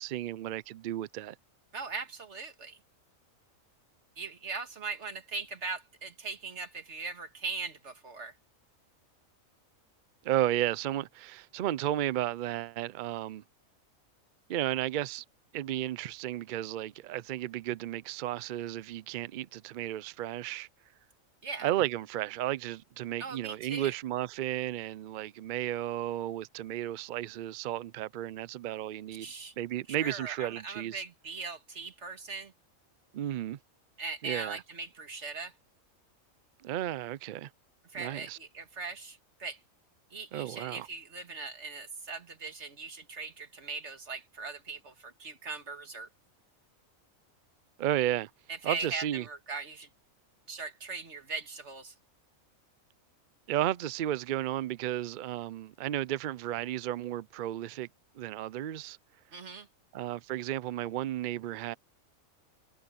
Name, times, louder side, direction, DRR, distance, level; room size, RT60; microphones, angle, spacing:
voice 1, 0.0-1.4 10.2-13.4 14.5-15.2 15.5-20.7 21.6-29.3 29.6-31.0 33.1-33.6 34.2-34.6 36.6-37.5 37.9-38.4 40.3-40.9 47.8-48.3 48.6-49.3 53.5-57.9 58.1-59.0 59.9-61.7, right 13 dB, 85° right, 0.4 m, -33 dB
voice 2, 1.7-2.8 4.2-8.3 21.4-21.7 23.2-23.9 29.2-29.5 30.0-32.5 34.0-35.5 37.9-39.6 40.1-46.1 48.5-49.9 50.5-51.9 59.3-59.7, right 4 dB, 55° right, 2.2 m, -40 dB
omnidirectional pair, 1.4 m